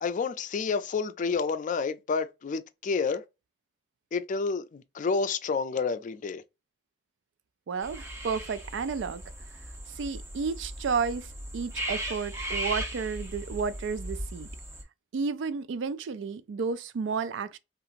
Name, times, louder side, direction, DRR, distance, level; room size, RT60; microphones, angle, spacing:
voice 1, 0.0-3.2 4.1-6.4, left 5 dB, 45° left, 0.4 m, -29 dB
voice 2, 7.7-9.2 10.0-11.3 11.5-14.5 15.1-17.6, right 5 dB, 80° right, 0.4 m, -32 dB
sound 1, 7.8-14.8, right 1 dB, 15° right, 0.8 m, -37 dB
2.8 x 2.4 x 2.4 m
head